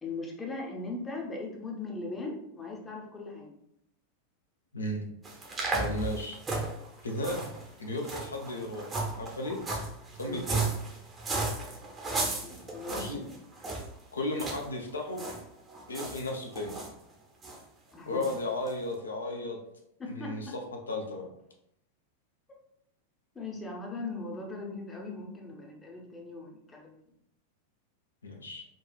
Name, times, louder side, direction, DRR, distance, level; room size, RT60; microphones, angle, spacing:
voice 1, 0.0-3.5 10.3-10.5 12.4-13.3 17.9-18.3 20.0-20.3 23.3-26.9, left 3 dB, 15° left, 0 dB, 0.7 m, -39 dB
voice 2, 4.7-5.1 5.8-6.4 7.0-7.5 7.8-8.9 9.2-9.6 10.2-10.7 12.9-13.2 14.1-15.3 15.9-16.8 18.1-19.6 20.1-20.5 20.9-21.3 28.2-28.7, left 1 dB, 75° left, 2 dB, 0.5 m, -34 dB
sound 1, 5.2-13.9 14.4-14.6 14.9-15.4 15.7-16.9 17.4-17.6 18.2-18.4 18.7-18.8, right 3 dB, 20° right, 0.7 m, -35 dB
3.8 x 2.3 x 2.3 m, 0.76 s
figure-of-eight pair, 90°, 0 cm